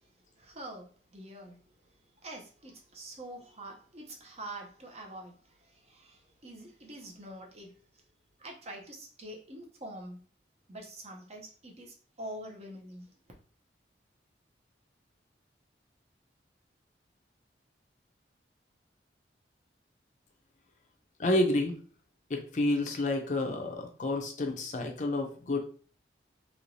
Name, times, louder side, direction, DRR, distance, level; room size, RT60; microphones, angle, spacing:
voice 1, 0.4-0.9 1.1-1.6 2.2-5.3 5.6-7.7 8.4-10.2 10.7-13.1, right 1 dB, 35° right, 0 dB, 0.7 m, -45 dB
voice 2, 21.2-21.8 22.3-25.6, left 1 dB, 45° left, 3 dB, 0.5 m, -29 dB
3.2 x 2.9 x 2.6 m, 0.42 s
head